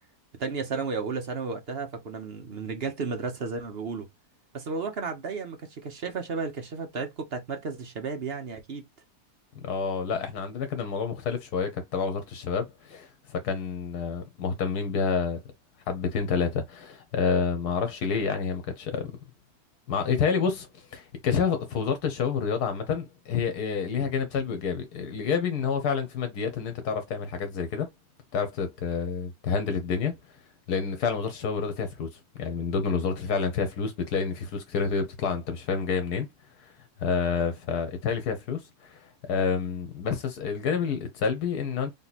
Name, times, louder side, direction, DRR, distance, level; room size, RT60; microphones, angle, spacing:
voice 1, 0.4-4.1 4.5-8.9, right 4 dB, 45° right, 0.9 m, -33 dB
voice 2, 9.6-15.4 15.9-19.1 19.9-27.9 28.3-30.4 30.7-36.3 36.6-36.7 37.0-41.9, left 6 dB, 80° left, 1.4 m, -28 dB
3.6 x 3.0 x 4.0 m
omnidirectional pair, 1.7 m